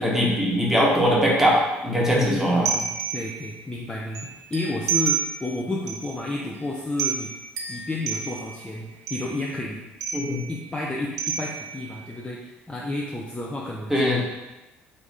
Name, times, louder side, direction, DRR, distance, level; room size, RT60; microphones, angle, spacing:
voice 1, 0.0-2.7 10.1-10.4 13.9-14.2, equal, 5° right, -4 dB, 1.2 m, -21 dB
voice 2, 2.1-7.3 7.7-9.9 10.5-14.2, left 2 dB, 15° left, -3 dB, 0.5 m, -31 dB
sound 1, 2.6-3.6 4.1-5.5 5.9-6.1 6.5-6.6 7.0-8.6 9.1-9.5 10.0-10.6 11.2-12.0, right 6 dB, 60° right, 0.5 m, -29 dB
3.5 x 2.6 x 3.3 m, 1.0 s
hypercardioid pair, 55°, 6 cm